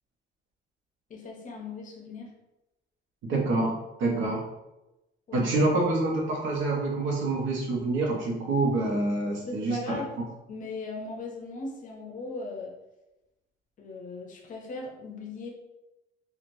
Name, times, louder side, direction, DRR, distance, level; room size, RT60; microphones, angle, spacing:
voice 1, 1.1-2.3 5.3-5.4 9.4-10.1 10.5-12.7 13.8-15.5, left 3 dB, 40° left, 1 dB, 0.6 m, -38 dB
voice 2, 3.2-4.5 5.3-10.0, right 2 dB, 75° right, -1 dB, 0.9 m, -27 dB
3.1 x 2.4 x 2.6 m, 0.97 s
cardioid pair, 150°, 20 cm